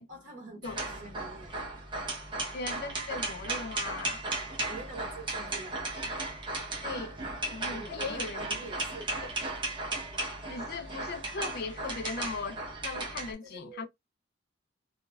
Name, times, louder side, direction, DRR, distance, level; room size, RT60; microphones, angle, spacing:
voice 1, 0.1-1.6 4.7-5.8 7.7-9.1 13.2-13.9, right 2 dB, 65° right, 1.2 m, -45 dB
sound 1, 0.6-13.3, right 2 dB, 25° right, 0.8 m, -36 dB
voice 2, 2.5-4.2 6.8-7.2 7.5-8.7 9.2-9.3 10.5-13.9, left 4 dB, 55° left, 0.5 m, -38 dB
3.0 x 2.0 x 2.3 m
head